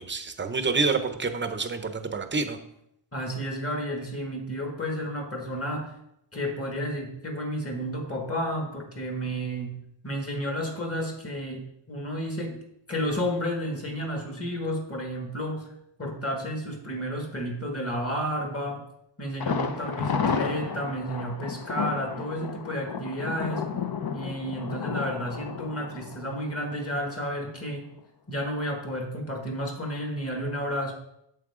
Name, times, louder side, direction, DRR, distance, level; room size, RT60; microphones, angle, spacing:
voice 1, 0.0-2.6, right 4 dB, 25° right, 8 dB, 0.7 m, -28 dB
voice 2, 3.1-5.9 6.3-12.6 12.9-15.7 16.0-18.8 19.2-23.7 24.1-27.8 28.3-30.9, equal, 30° left, 1 dB, 1.8 m, -31 dB
Thunder, 19.4-27.2 27.5-27.6 28.0-28.1, left 6 dB, 45° left, 0.8 m, -32 dB
8.7 x 7.6 x 3.7 m, 0.78 s
wide cardioid pair, 140°, 50 cm